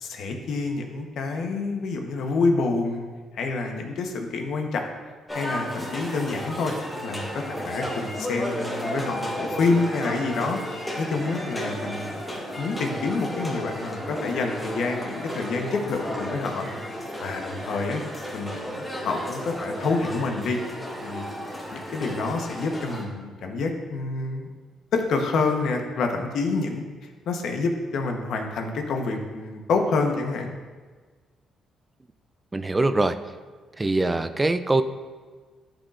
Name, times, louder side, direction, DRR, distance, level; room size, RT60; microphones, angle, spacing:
voice 1, 0.0-3.1 3.3-4.9 5.3-6.7 7.0-12.2 12.6-16.8 17.2-18.0 18.3-20.6 21.0-21.2 21.7-24.5 24.9-26.8 27.3-30.5, left 3 dB, 70° left, 3 dB, 1.0 m, -27 dB
sound 1, 5.3-23.0, equal, 15° left, 2.0 m, -33 dB
voice 2, 32.5-33.2 33.8-34.8, right 2 dB, 20° right, 10 dB, 0.3 m, -22 dB
11.5 x 5.1 x 2.5 m, 1.4 s
cardioid pair, 90°, 0 cm